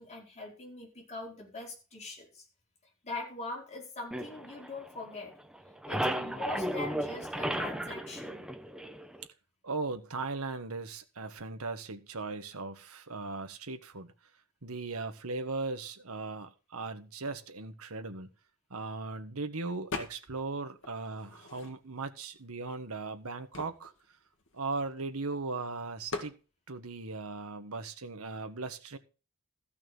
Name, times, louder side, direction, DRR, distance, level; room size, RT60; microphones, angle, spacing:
voice 1, 0.0-2.5 3.0-5.3 5.8-8.5, left 2 dB, 30° left, 4.7 m, -42 dB
sound 1, 4.1-5.3 5.5-9.2, equal, 5° right, 0.9 m, -34 dB
voice 2, 9.6-14.1 14.6-18.3 18.7-23.9 24.5-26.3 26.7-29.0, right 3 dB, 85° right, 1.5 m, -38 dB
sound 2, 19.9-20.5 20.8-22.1 22.7-22.8 23.0-25.3 26.1-26.4, left 3 dB, 60° left, 2.3 m, -41 dB
14.5 x 6.1 x 6.1 m
head